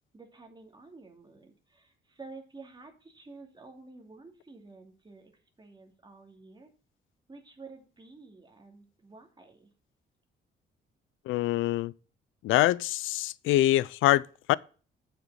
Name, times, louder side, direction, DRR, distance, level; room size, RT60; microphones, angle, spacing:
voice 1, 0.1-5.3 5.6-6.7 7.3-9.7, right 3 dB, 20° right, 2.6 m, -50 dB
voice 2, 11.3-11.9 12.4-14.5, left 15 dB, 85° left, 0.4 m, -25 dB
7.5 x 6.1 x 5.5 m
cardioid pair, 90°, 20 cm